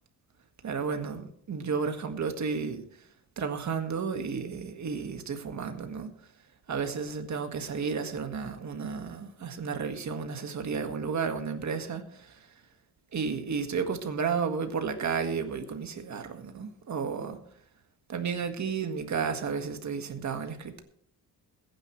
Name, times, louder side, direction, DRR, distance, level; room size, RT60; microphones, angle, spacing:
voice 1, 0.6-2.8 3.4-6.1 6.7-12.5 13.1-17.4 18.1-20.8, right 5 dB, 45° right, 1.8 m, -32 dB
21.5 x 10.0 x 3.2 m
cardioid pair, 150°, 39 cm